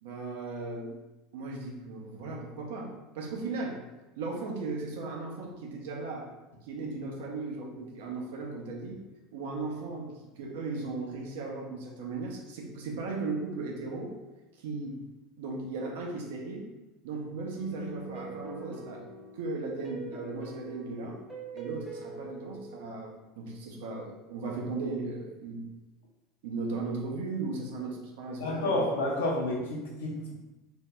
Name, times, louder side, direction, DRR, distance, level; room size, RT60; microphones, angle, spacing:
voice 1, 0.0-1.0 1.3-3.8 4.2-6.3 6.6-9.0 9.3-14.1 14.6-15.1 15.4-16.7 17.0-19.1 19.3-21.2 21.5-25.7 26.4-28.8, right 3 dB, 70° right, 0 dB, 0.6 m, -37 dB
sound 1, 17.6-22.9, right 3 dB, ahead, 0.8 m, -43 dB
voice 2, 28.4-30.4, left 1 dB, 75° left, -1 dB, 0.7 m, -30 dB
2.7 x 2.1 x 3.3 m, 1.1 s
hypercardioid pair, 75°, 0 cm